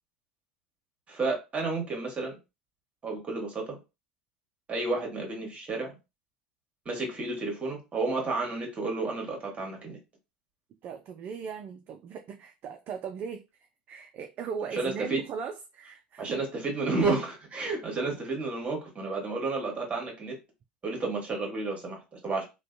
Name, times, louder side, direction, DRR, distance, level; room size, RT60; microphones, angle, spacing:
voice 1, 1.1-2.4 3.0-3.8 4.7-5.9 6.8-10.0 14.7-15.2 16.2-20.4 20.8-22.4, right 3 dB, 25° right, 1.2 m, -31 dB
voice 2, 10.8-13.4 13.9-16.4, right 6 dB, 40° right, 0.3 m, -38 dB
2.5 x 2.2 x 2.5 m
hypercardioid pair, 80°, 5 cm